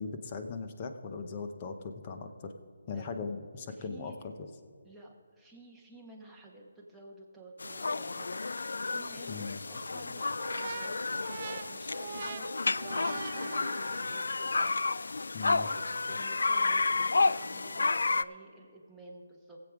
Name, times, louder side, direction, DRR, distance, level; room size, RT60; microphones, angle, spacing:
voice 1, 0.0-2.5 2.9-4.1 9.3-9.6 15.3-15.7, left 4 dB, 25° left, 7 dB, 0.8 m, -39 dB
voice 2, 3.7-4.3 4.8-12.5 12.8-14.5 15.4-19.6, right 2 dB, ahead, -5 dB, 1.2 m, -52 dB
sound 1, 7.6-18.2, left 3 dB, 80° left, 0.3 m, -31 dB
sound 2, 10.4-14.3, right 7 dB, 35° right, 0.3 m, -43 dB
17.5 x 7.9 x 4.9 m, 2.3 s
hypercardioid pair, 170°, 0 cm